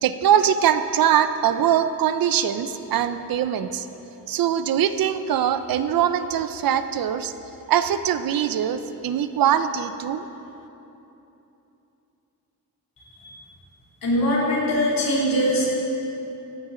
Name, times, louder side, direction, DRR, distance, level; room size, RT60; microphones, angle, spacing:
voice 1, 0.0-3.9 4.3-7.3 7.7-10.3, right 9 dB, 65° right, 11 dB, 0.6 m, -22 dB
voice 2, 14.0-15.7, equal, 65° left, -5 dB, 3.1 m, -22 dB
14.5 x 10.5 x 3.8 m, 3.0 s
wide cardioid pair, 155°, 37 cm